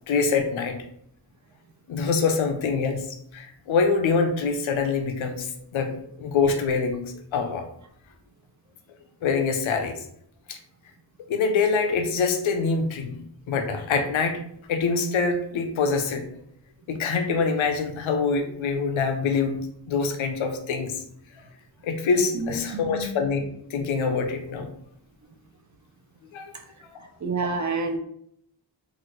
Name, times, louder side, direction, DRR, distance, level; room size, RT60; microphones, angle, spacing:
voice 1, 0.1-0.8 1.9-7.7 9.2-10.1 10.5-10.6 11.3-14.4 14.7-16.3 16.9-19.6 19.9-21.0 21.8-23.4 23.7-24.7 26.3-26.5, left 5 dB, 90° left, 6 dB, 0.6 m, -25 dB
voice 2, 22.3-23.1 27.2-28.0, right 3 dB, 40° right, 5 dB, 0.6 m, -28 dB
3.1 x 2.4 x 2.9 m, 0.70 s
wide cardioid pair, 75°, 46 cm